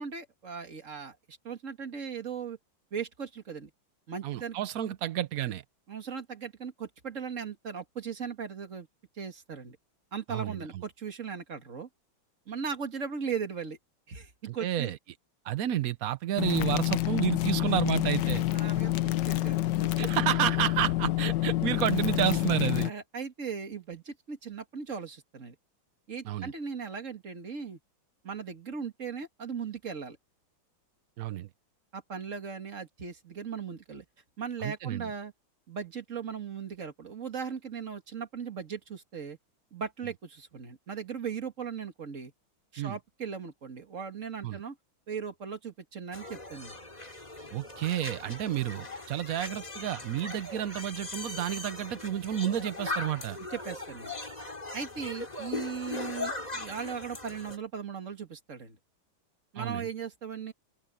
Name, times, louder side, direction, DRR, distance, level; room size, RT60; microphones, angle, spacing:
voice 1, 0.0-2.6 2.9-3.7 4.1-4.6 5.9-8.9 9.2-9.8 10.1-11.9 12.5-13.8 14.1-14.9 18.5-19.6 22.8-25.6 26.1-27.8 28.2-30.2 31.9-34.0 34.4-35.3 35.7-39.4 39.7-42.3 42.7-44.8 45.1-46.8 53.5-54.1 54.7-58.8 59.5-60.5, right 6 dB, 40° right, 2.2 m, -38 dB
voice 2, 4.2-5.6 10.3-10.7 14.5-15.0 15.4-18.4 20.0-22.9 26.2-26.5 31.2-31.5 34.6-35.1 42.8-43.0 44.4-44.6 47.5-53.4 59.6-59.9, right 11 dB, 65° right, 0.9 m, -30 dB
sound 1, 16.4-22.9, left 16 dB, 70° left, 1.2 m, -28 dB
sound 2, 46.1-57.6, left 2 dB, 20° left, 2.9 m, -39 dB
open air
omnidirectional pair, 2.2 m